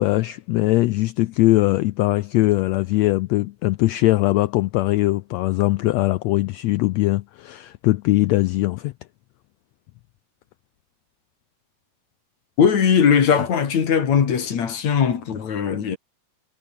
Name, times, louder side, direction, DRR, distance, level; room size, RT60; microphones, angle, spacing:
voice 1, 0.0-8.9, left 18 dB, 80° left, 1.5 m, -20 dB
voice 2, 12.6-16.0, left 7 dB, 65° left, 3.7 m, -19 dB
omnidirectional pair, 3.6 m